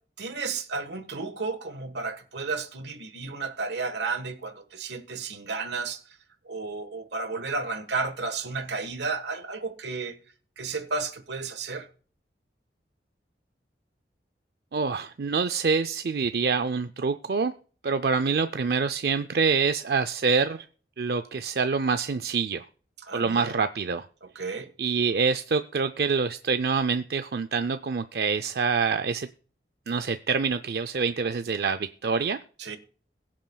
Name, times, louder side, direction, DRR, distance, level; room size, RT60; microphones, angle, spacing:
voice 1, 0.2-6.0 6.5-10.2 10.6-11.9 23.0-23.5 24.3-24.7 32.6-32.8, right 4 dB, 80° right, 1.4 m, -32 dB
voice 2, 14.7-17.5 17.8-20.7 21.0-22.7 23.1-24.1 24.8-29.3 29.9-32.4, right 5 dB, 60° right, 0.4 m, -26 dB
22.0 x 7.4 x 2.3 m
head